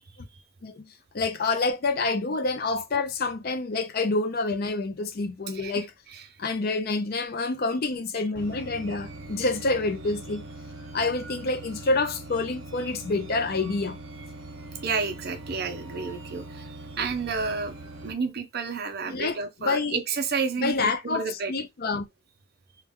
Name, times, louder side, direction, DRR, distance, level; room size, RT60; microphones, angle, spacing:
voice 1, 1.1-5.9 6.4-10.4 10.9-14.0 19.0-20.0 20.6-22.1, left 3 dB, 50° left, 0.5 m, -27 dB
sound 1, 8.3-18.1, right 2 dB, 85° right, 0.9 m, -42 dB
voice 2, 14.8-16.6 17.0-17.7 18.0-21.5, right 5 dB, 50° right, 0.6 m, -30 dB
3.1 x 2.3 x 3.5 m
head